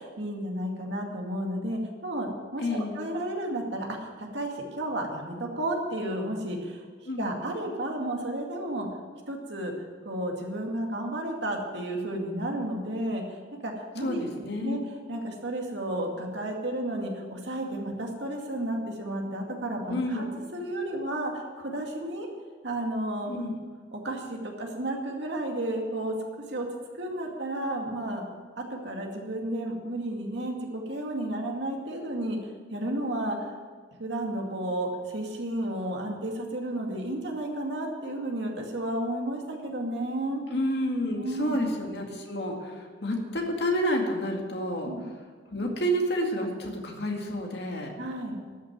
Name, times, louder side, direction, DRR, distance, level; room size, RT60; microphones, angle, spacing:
voice 1, 0.0-6.8 7.2-8.9 9.3-9.7 10.0-13.2 13.6-14.8 15.1-20.2 20.5-22.3 22.6-23.3 23.9-26.2 26.5-26.7 27.0-28.2 28.6-32.4 32.7-33.5 34.0-40.4 41.2-41.6 44.8-45.0 48.0-48.4, right 1 dB, 70° right, 1 dB, 2.3 m, -32 dB
voice 2, 2.6-3.0 7.0-7.3 14.0-14.8 19.9-20.3 23.3-23.5 40.5-44.9 45.5-47.9, equal, 60° left, 1 dB, 2.1 m, -29 dB
13.0 x 6.3 x 9.2 m, 1.5 s
head